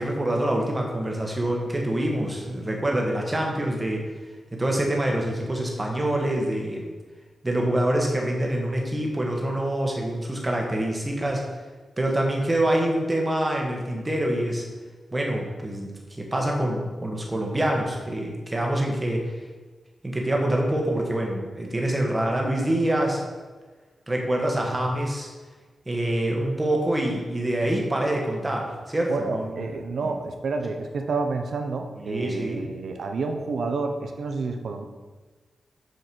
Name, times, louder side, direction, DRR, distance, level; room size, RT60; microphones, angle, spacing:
voice 1, 0.0-4.1 4.5-6.9 7.4-11.4 12.0-14.6 15.1-19.3 20.0-23.2 24.1-25.3 25.9-29.5 30.0-30.1 32.0-32.7, right 1 dB, 15° right, 0 dB, 1.3 m, -26 dB
voice 2, 29.1-34.8, right 3 dB, 65° right, 5 dB, 0.8 m, -29 dB
6.7 x 6.6 x 4.5 m, 1.3 s
wide cardioid pair, 160°, 0 cm